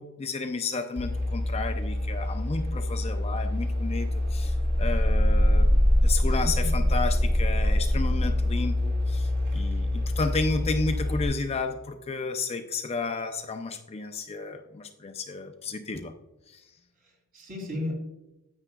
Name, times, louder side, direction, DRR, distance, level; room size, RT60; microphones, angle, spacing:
voice 1, 0.0-16.1 16.5-16.6, left 3 dB, 30° left, 6 dB, 0.5 m, -32 dB
sound 1, 1.0-11.2, left 1 dB, 55° right, 2.8 m, -25 dB
voice 2, 6.3-6.7 17.0-18.0, left 1 dB, 40° right, 1 dB, 2.6 m, -35 dB
9.8 x 8.8 x 2.3 m, 0.95 s
head